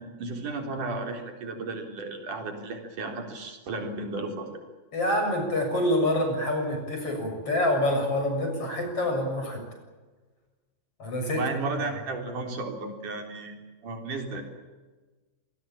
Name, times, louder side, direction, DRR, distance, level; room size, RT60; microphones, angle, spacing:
voice 1, 0.0-4.6 11.3-13.6 13.8-14.4, right 3 dB, 55° right, 4 dB, 5.2 m, -34 dB
voice 2, 4.9-9.6 11.0-11.4, left 1 dB, 35° left, 4 dB, 7.7 m, -26 dB
26.5 x 20.5 x 8.7 m, 1.3 s
omnidirectional pair, 4.5 m